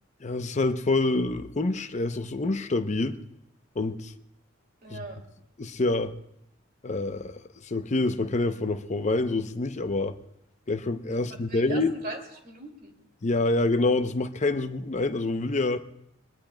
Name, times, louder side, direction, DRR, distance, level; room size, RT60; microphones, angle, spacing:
voice 1, 0.2-3.2 3.8-4.1 4.9-5.0 5.6-6.1 6.8-7.3 7.6-10.1 10.7-11.9 13.2-15.8, left 2 dB, 35° left, 0.6 m, -26 dB
voice 2, 4.8-5.2 11.1-12.9, right 2 dB, 45° right, 2.4 m, -40 dB
22.5 x 20.5 x 2.2 m
head